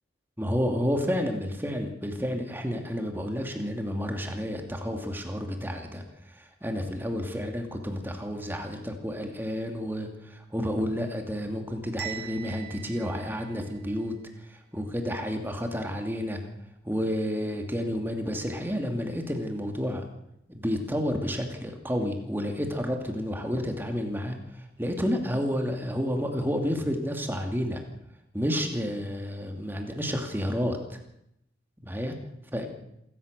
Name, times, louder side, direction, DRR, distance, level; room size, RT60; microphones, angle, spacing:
voice 1, 0.4-6.0 6.3-14.1 14.5-16.4 16.8-20.0 20.5-27.8 28.3-31.0 31.8-32.1 32.5-32.7, equal, 10° right, 4 dB, 2.5 m, -30 dB
Bell, 12.0-14.0, right 10 dB, 60° right, 4.7 m, -41 dB
27.0 x 14.0 x 6.8 m, 0.78 s
head